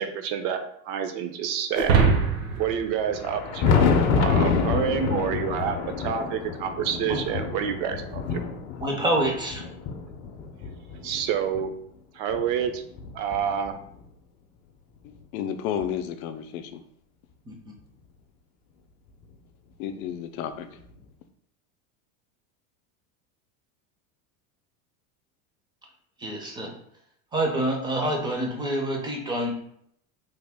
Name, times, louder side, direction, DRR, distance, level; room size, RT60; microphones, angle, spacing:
voice 1, 0.0-2.0 2.6-3.9 4.2-8.4 11.0-11.8 12.1-12.8 13.1-13.7, right 8 dB, 60° right, 8 dB, 0.5 m, -28 dB
sound 1, 1.7-4.3, right 5 dB, 75° right, 0.8 m, -24 dB
Thunder, 3.1-11.7 12.3-14.0 15.2-15.3 15.8-15.9 17.8-17.9 19.2-19.3 20.9-21.0, left 5 dB, 40° left, 0.5 m, -27 dB
voice 2, 8.8-9.6 17.5-17.6 26.2-26.7 27.3-29.5, right 1 dB, 10° right, 0 dB, 0.4 m, -27 dB
voice 3, 15.0-16.8 19.8-20.7, left 9 dB, 90° left, 8 dB, 0.5 m, -32 dB
3.4 x 2.1 x 3.4 m, 0.69 s
supercardioid pair, 140°, 42 cm